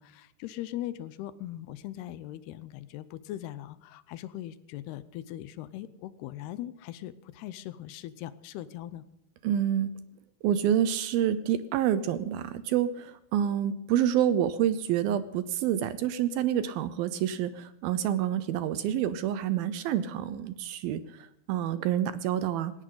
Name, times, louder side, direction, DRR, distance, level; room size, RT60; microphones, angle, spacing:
voice 1, 0.0-9.0, left 13 dB, 80° left, 15 dB, 2.7 m, -40 dB
voice 2, 9.4-9.9 10.4-22.7, right 10 dB, 80° right, 13 dB, 2.3 m, -28 dB
20.0 x 17.5 x 3.9 m, 0.78 s
omnidirectional pair, 4.7 m